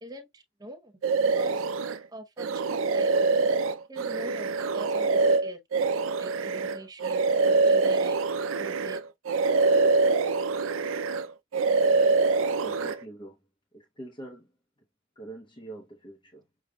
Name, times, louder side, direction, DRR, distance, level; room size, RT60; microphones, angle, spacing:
voice 1, 0.0-0.9 1.3-1.7 2.1-3.6 3.9-5.6 6.2-8.2 8.6-9.0, right 1 dB, 20° right, 0.8 m, -44 dB
sound 1, 1.0-2.0 2.4-9.0 9.3-11.3 11.5-12.9, right 3 dB, 70° right, 0.4 m, -24 dB
voice 2, 12.6-13.4 13.7-14.5 15.2-16.4, right 2 dB, 25° left, 0.8 m, -44 dB
6.6 x 2.3 x 2.3 m
head